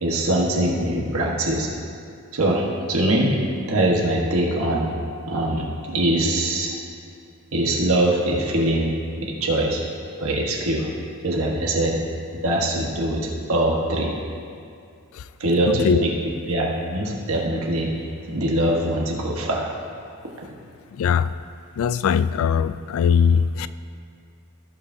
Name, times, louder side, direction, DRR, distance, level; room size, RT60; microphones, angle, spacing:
voice 1, 0.0-1.7 2.3-3.3 3.7-4.9 5.3-6.7 7.5-8.9 9.2-9.8 10.2-10.9 11.2-12.0 12.4-14.2 15.4-16.1 16.5-17.9 18.3-19.7, right 1 dB, 65° right, -2 dB, 1.4 m, -22 dB
voice 2, 15.7-16.0 20.9-21.4 21.8-23.7, left 7 dB, 65° left, 15 dB, 0.3 m, -20 dB
17.0 x 5.8 x 2.8 m, 2.4 s
head